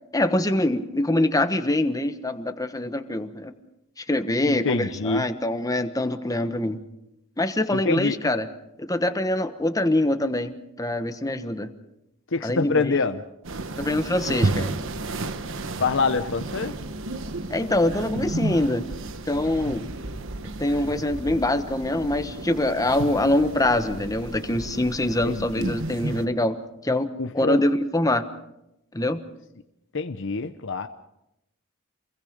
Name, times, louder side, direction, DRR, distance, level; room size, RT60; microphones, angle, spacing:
voice 1, 0.1-3.5 4.0-6.8 7.4-8.5 8.8-11.7 12.4-13.0 13.8-14.7 17.5-18.9 19.3-19.9 20.6-26.6 26.8-28.2 28.9-29.2, left 1 dB, 15° left, 9 dB, 1.3 m, -24 dB
voice 2, 4.4-5.3 7.7-8.2 12.3-13.2 15.8-16.8 25.2-25.7 27.2-27.6 29.9-30.9, left 4 dB, 60° left, 8 dB, 0.8 m, -25 dB
sound 1, 13.4-26.3, right 2 dB, 65° right, 1.2 m, -32 dB
28.0 x 22.0 x 5.2 m, 0.87 s
head